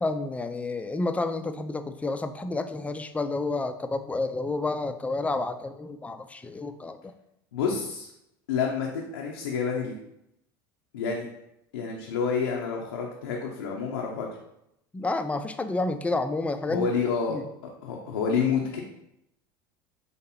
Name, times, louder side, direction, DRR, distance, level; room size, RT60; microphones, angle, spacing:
voice 1, 0.0-7.1 14.9-16.9 17.3-17.4, left 2 dB, 10° left, 9 dB, 0.3 m, -30 dB
voice 2, 7.5-8.1 8.5-9.9 10.9-11.3 11.7-14.3 16.7-17.4 17.8-18.8, left 6 dB, 80° left, -2 dB, 0.5 m, -28 dB
3.2 x 2.8 x 4.1 m, 0.81 s
hypercardioid pair, 75°, 12 cm